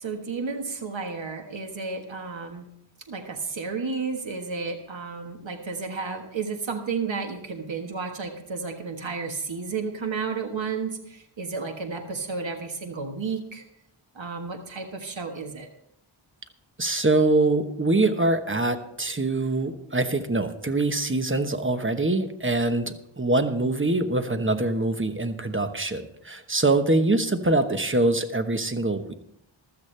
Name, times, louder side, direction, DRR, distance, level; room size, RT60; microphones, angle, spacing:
voice 1, 0.0-2.7 3.1-13.6 14.1-15.7, right 4 dB, 65° right, 4 dB, 1.5 m, -32 dB
voice 2, 16.8-29.1, right 2 dB, 25° right, 8 dB, 1.1 m, -24 dB
15.5 x 13.0 x 3.3 m, 0.74 s
wide cardioid pair, 65°, 50 cm